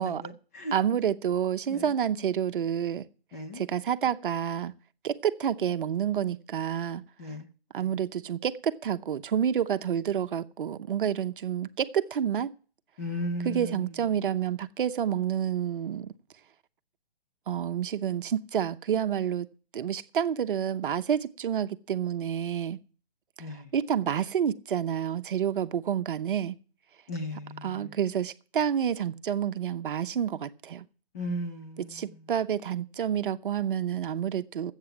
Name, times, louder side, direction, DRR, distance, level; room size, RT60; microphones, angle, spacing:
voice 1, 0.0-0.7 1.7-1.9 3.3-3.6 7.2-7.5 13.0-13.9 23.4-23.7 27.1-27.9 31.1-32.3, left 1 dB, 15° left, 0.5 m, -36 dB
voice 2, 0.7-3.1 3.5-4.7 5.0-7.0 7.7-12.5 13.4-16.1 17.5-19.5 19.7-22.8 23.5-26.5 27.6-30.8 31.9-34.7, right 9 dB, 55° right, 0.7 m, -29 dB
12.5 x 8.1 x 7.6 m
hypercardioid pair, 160°, 31 cm